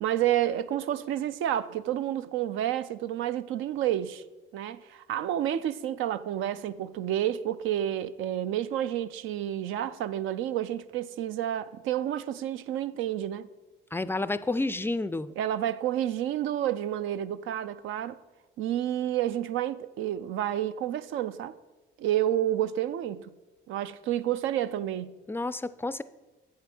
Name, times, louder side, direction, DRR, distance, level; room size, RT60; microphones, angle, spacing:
voice 1, 0.0-4.2 4.5-13.5 15.4-18.2 18.6-21.6 22.0-23.3 23.7-25.2, right 11 dB, 85° right, 0.4 m, -30 dB
voice 2, 13.9-15.3 25.3-26.0, left 2 dB, 10° left, 0.3 m, -30 dB
7.5 x 5.6 x 6.0 m
cardioid pair, 90°, 20 cm